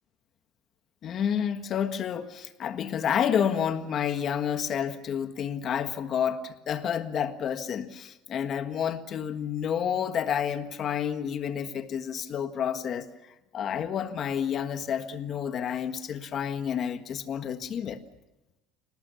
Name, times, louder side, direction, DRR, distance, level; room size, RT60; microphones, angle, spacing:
voice 1, 1.0-18.0, left 8 dB, 35° left, 1.5 m, -30 dB
28.0 x 19.0 x 7.0 m
cardioid pair, 165°, 0 cm